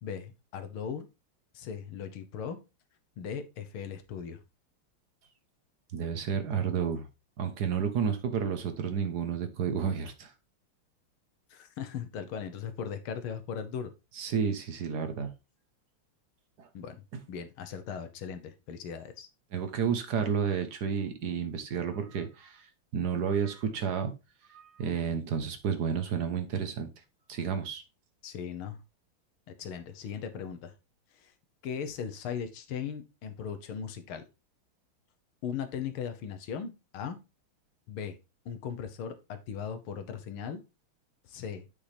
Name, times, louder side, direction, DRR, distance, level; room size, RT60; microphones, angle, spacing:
voice 1, 0.0-1.1 1.5-2.6 3.2-4.4 11.5-13.9 16.7-19.3 28.2-28.8 29.6-30.7 31.1-31.3 31.6-34.3 35.4-37.2 37.9-38.2 38.5-40.6 41.3-41.7, left 7 dB, 85° left, 9 dB, 1.9 m, -38 dB
voice 2, 5.9-7.1 7.4-10.3 14.2-15.3 16.6-16.7 19.5-22.7 22.9-24.1 24.5-26.9 27.3-27.8, right 6 dB, 55° right, 8 dB, 1.5 m, -31 dB
8.6 x 5.6 x 3.4 m, 0.27 s
omnidirectional pair, 2.3 m